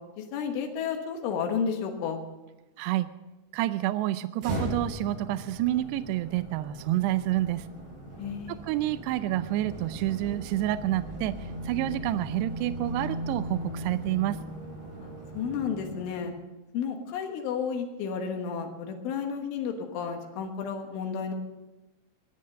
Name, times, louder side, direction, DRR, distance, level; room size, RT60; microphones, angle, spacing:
voice 1, 0.2-2.2 8.2-8.6 15.0-16.3 16.7-21.3, left 6 dB, 90° left, 4 dB, 3.9 m, -32 dB
voice 2, 2.8-3.1 3.5-7.6 8.5-11.3 11.7-14.4, right 14 dB, 85° right, 13 dB, 2.4 m, -28 dB
sound 1, 4.4-16.4, right 1 dB, 65° right, 7.4 m, -38 dB
21.0 x 7.5 x 6.5 m, 1.1 s
omnidirectional pair, 5.4 m